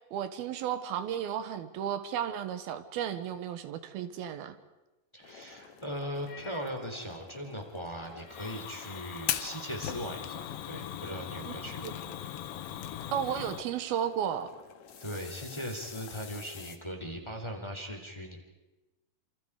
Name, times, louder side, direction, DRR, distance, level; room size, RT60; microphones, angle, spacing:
voice 1, 0.1-4.5 11.4-11.5 11.8-11.9 13.1-14.5, right 9 dB, 90° right, 10 dB, 3.1 m, -33 dB
voice 2, 5.1-11.9 13.3-13.4 15.0-18.4, equal, 10° left, 3 dB, 3.1 m, -39 dB
sound 1, 5.2-16.8, left 6 dB, 55° left, 2.7 m, -51 dB
Fire, 8.3-13.6, left 11 dB, 75° left, 2.8 m, -38 dB
28.5 x 27.5 x 4.9 m, 1.1 s
omnidirectional pair, 4.2 m